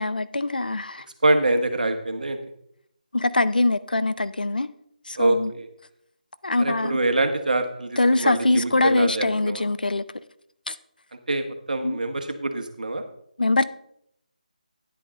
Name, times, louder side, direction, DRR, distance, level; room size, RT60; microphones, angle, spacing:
voice 1, 0.0-1.0 3.1-4.7 5.1-5.5 6.4-7.0 8.0-10.0 10.7-10.8 11.8-12.0 13.4-13.6, left 2 dB, 80° left, 0.6 m, -23 dB
voice 2, 1.2-2.4 5.2-5.7 6.5-9.6 11.3-13.0, right 2 dB, 65° right, 1.4 m, -25 dB
10.0 x 8.4 x 3.7 m
figure-of-eight pair, 155°, 5 cm